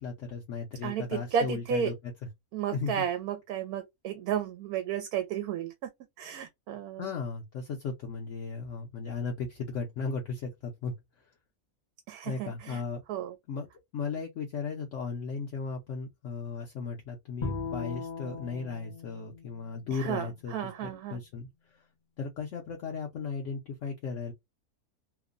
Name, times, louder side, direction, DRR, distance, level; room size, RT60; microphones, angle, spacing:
voice 1, 0.0-1.9 2.7-3.0 7.0-10.9 12.2-13.0 13.5-13.7 13.9-20.5 20.8-21.5 22.2-24.3, left 5 dB, 65° left, 0.9 m, -36 dB
voice 2, 0.8-1.9 2.5-5.9 6.2-7.1 12.1-12.8 13.1-13.4 19.9-21.2, right 8 dB, 80° right, 1.1 m, -33 dB
Bowed string instrument, 17.4-20.7, left 4 dB, 45° left, 0.6 m, -39 dB
2.9 x 2.1 x 2.4 m
omnidirectional pair, 1.6 m